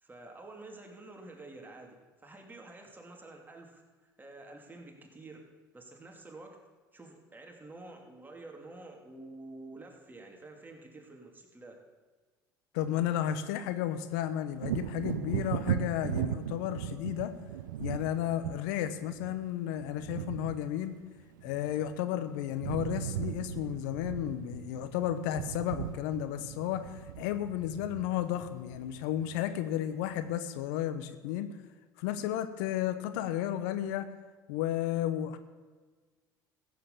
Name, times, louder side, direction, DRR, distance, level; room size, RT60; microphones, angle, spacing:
voice 1, 0.0-5.4 5.7-6.6 6.9-11.8, right 2 dB, 20° right, 1 dB, 2.9 m, -49 dB
voice 2, 12.7-17.3 17.8-21.0 21.4-31.5 32.0-34.1 34.5-35.4, left 11 dB, 75° left, 11 dB, 0.9 m, -33 dB
Wind / Thunder, 14.6-22.2 22.4-29.7 30.1-30.2, right 11 dB, 85° right, 0.5 m, -38 dB
14.5 x 7.9 x 6.9 m, 1.4 s
hypercardioid pair, 70°, 10 cm